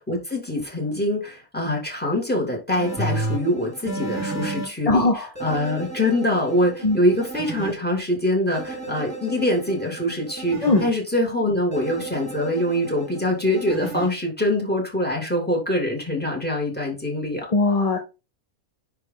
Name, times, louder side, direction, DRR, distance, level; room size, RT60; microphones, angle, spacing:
voice 1, 0.1-17.5, left 1 dB, 5° left, 1 dB, 2.5 m, -24 dB
sound 1, 2.8-4.7 5.4-7.7 8.5-10.9 11.7-14.1, right 2 dB, 10° right, 2.7 m, -32 dB
voice 2, 4.9-5.3 6.8-7.0 10.6-10.8 17.5-18.0, left 2 dB, 30° left, 4 dB, 0.8 m, -19 dB
9.9 x 3.4 x 3.9 m, 0.28 s
omnidirectional pair, 1.5 m